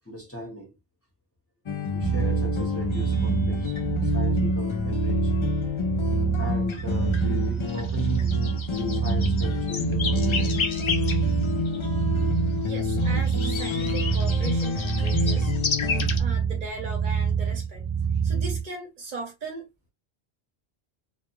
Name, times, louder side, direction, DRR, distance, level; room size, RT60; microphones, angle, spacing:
voice 1, 0.0-0.8 1.9-5.3 6.4-8.4 8.7-10.8, equal, 15° left, 0.6 m, -39 dB
sound 1, 1.7-16.2, left 5 dB, 50° left, 0.3 m, -28 dB
sound 2, 2.0-18.6, right 7 dB, 35° right, 0.4 m, -27 dB
voice 2, 12.7-15.5 16.2-17.9 18.2-19.9, right 3 dB, 55° right, 0.8 m, -38 dB
2.2 x 2.2 x 2.9 m
omnidirectional pair, 1.1 m